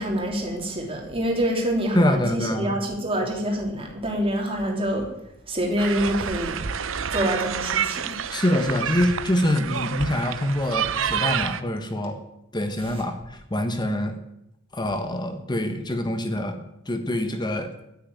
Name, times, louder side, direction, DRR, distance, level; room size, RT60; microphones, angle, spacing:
voice 1, 0.0-5.1 5.5-6.6 7.1-8.1, equal, 30° right, 0 dB, 3.2 m, -26 dB
voice 2, 1.9-2.8 8.3-12.2 12.5-14.2 14.7-17.8, left 1 dB, 20° left, 7 dB, 1.3 m, -25 dB
sound 1, 5.8-11.6, right 7 dB, 75° right, 0.8 m, -28 dB
9.7 x 9.2 x 9.5 m, 0.83 s
head